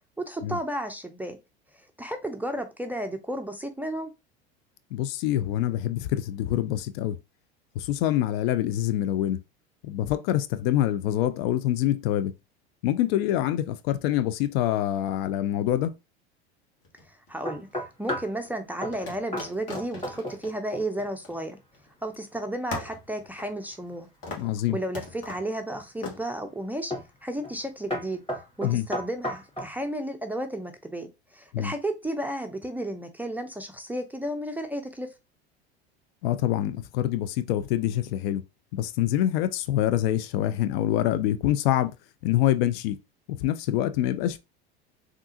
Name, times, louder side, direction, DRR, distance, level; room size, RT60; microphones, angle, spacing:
voice 1, 0.2-1.4 2.0-4.1 17.3-21.6 22.0-24.1 24.7-26.9 27.2-28.2 28.6-35.1, right 1 dB, 5° right, 0.4 m, -33 dB
voice 2, 4.9-7.2 7.8-9.4 9.8-12.3 12.8-15.9 24.4-24.8 28.6-28.9 31.5-31.7 36.2-38.4 38.7-41.9 42.2-43.0 43.3-44.4, left 12 dB, 65° left, 0.5 m, -25 dB
sound 1, 16.8-17.7 18.9-21.9 22.2-22.3 22.7-24.0 24.2-24.6 24.9-25.5 26.0-26.2, left 3 dB, 50° left, 1.5 m, -40 dB
sound 2, 17.5-18.4 18.8-19.0 19.3-19.5 19.7-20.5 20.7-21.1 24.4-25.1 25.7-26.1 26.9-27.2 27.4-27.6 27.9-29.8, equal, 15° left, 1.9 m, -34 dB
3.5 x 2.5 x 2.7 m
hypercardioid pair, 90°, 33 cm